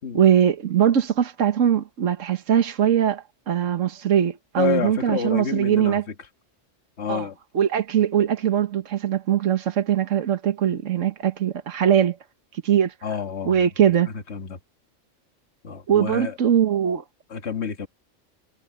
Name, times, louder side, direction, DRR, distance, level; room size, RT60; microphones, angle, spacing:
voice 1, 0.1-6.0 7.1-7.3 7.5-12.2 12.5-12.9 13.5-14.1 15.9-17.0, right 9 dB, 75° right, 1.5 m, -21 dB
voice 2, 4.6-6.0 7.0-7.4 13.0-13.6 14.1-14.6 15.6-16.4 17.3-17.9, left 7 dB, 60° left, 1.9 m, -29 dB
omnidirectional pair, 1.3 m